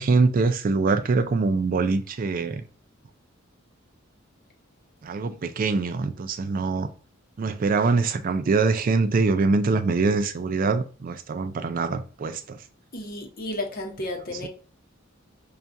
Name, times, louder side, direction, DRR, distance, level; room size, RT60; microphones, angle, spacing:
voice 1, 0.0-2.6 5.0-6.9 7.4-12.6 14.4-14.5, right 4 dB, 45° right, 0.3 m, -24 dB
voice 2, 12.9-14.5, left 1 dB, 45° left, 0.8 m, -32 dB
5.6 x 2.3 x 2.6 m
head